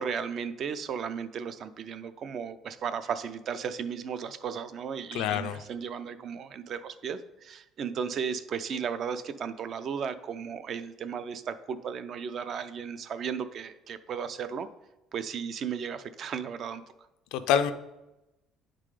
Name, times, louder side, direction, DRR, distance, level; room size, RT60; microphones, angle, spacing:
voice 1, 0.0-14.7 15.1-16.8, right 7 dB, 40° right, 12 dB, 0.4 m, -35 dB
voice 2, 5.1-5.6 17.3-17.7, left 9 dB, 80° left, 11 dB, 0.4 m, -26 dB
9.0 x 3.8 x 4.9 m, 0.97 s
cardioid pair, 170°, 0 cm